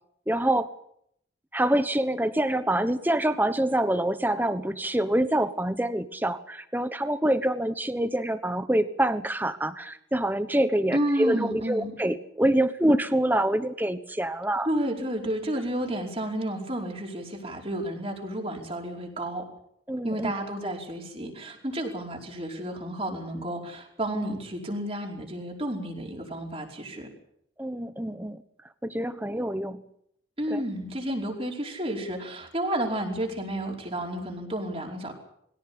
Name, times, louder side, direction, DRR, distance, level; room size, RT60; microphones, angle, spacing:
voice 1, 0.3-0.7 1.5-14.7 19.9-20.3 27.6-28.4 28.8-29.8 30.5-30.6, right 1 dB, 10° right, 11 dB, 1.2 m, -26 dB
voice 2, 10.9-11.9 14.6-19.5 20.0-27.1 30.4-35.1, right 1 dB, 30° right, 0 dB, 5.0 m, -31 dB
22.5 x 17.0 x 8.7 m, 0.72 s
head